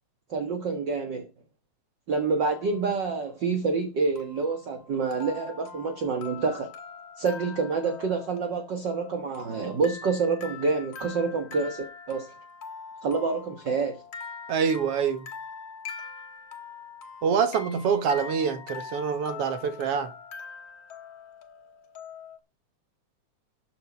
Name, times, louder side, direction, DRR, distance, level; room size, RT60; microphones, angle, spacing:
voice 1, 0.3-1.3 2.1-6.7 7.2-12.3 13.0-14.0, right 4 dB, 45° right, 1.9 m, -27 dB
sound 1, 2.5-2.9 4.2-22.4, left 5 dB, 55° left, 3.0 m, -43 dB
voice 2, 14.5-15.3 17.2-20.1, right 6 dB, 60° right, 2.2 m, -26 dB
13.5 x 7.9 x 5.1 m
omnidirectional pair, 3.3 m